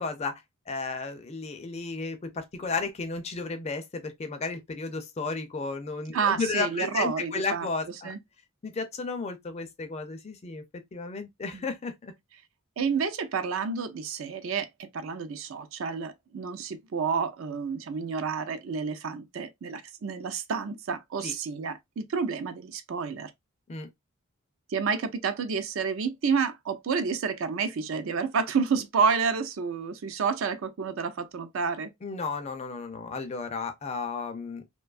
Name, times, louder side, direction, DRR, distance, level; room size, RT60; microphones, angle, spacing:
voice 1, 0.0-8.1 8.6-10.6 10.9-12.1 21.2-21.3 23.7-23.9 32.0-34.6, left 4 dB, 30° left, 0.4 m, -33 dB
voice 2, 6.1-7.7 8.0-8.2 11.5-11.6 12.8-23.3 24.7-31.9, right 5 dB, 60° right, 0.4 m, -29 dB
2.6 x 2.2 x 2.3 m
head